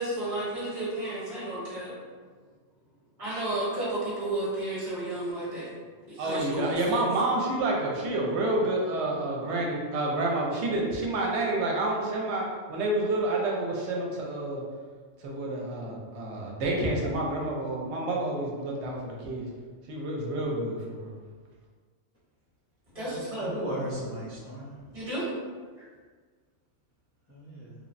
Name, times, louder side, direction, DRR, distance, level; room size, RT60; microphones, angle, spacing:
voice 1, 0.0-1.9 3.2-5.7 6.1-7.0 22.9-23.6 24.9-25.3, right 1 dB, 30° right, -10 dB, 1.0 m, -32 dB
voice 2, 6.2-14.6 15.2-19.5 19.9-21.1, right 2 dB, 70° right, -2 dB, 0.9 m, -29 dB
voice 3, 22.9-24.7 27.3-27.7, equal, 20° left, -10 dB, 0.4 m, -37 dB
3.2 x 2.0 x 2.5 m, 1.5 s
omnidirectional pair, 1.2 m